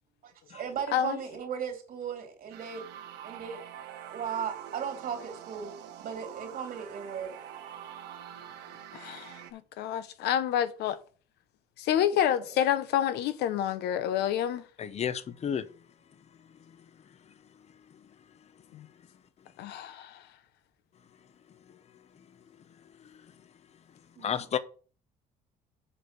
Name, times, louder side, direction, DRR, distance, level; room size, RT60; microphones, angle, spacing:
voice 1, 0.2-2.8 3.2-3.6 4.1-5.7 6.0-7.3 11.9-12.0 24.2-24.3, right 7 dB, 55° right, 2.5 m, -36 dB
sound 1, 2.5-9.5, right 10 dB, 85° right, 1.3 m, -45 dB
voice 2, 8.9-11.0 11.8-14.6 18.7-18.9 19.6-20.2, left 10 dB, 80° left, 0.9 m, -28 dB
voice 3, 14.8-15.7 24.2-24.6, left 8 dB, 40° left, 0.8 m, -31 dB
7.1 x 4.6 x 6.7 m
cardioid pair, 110°, 17 cm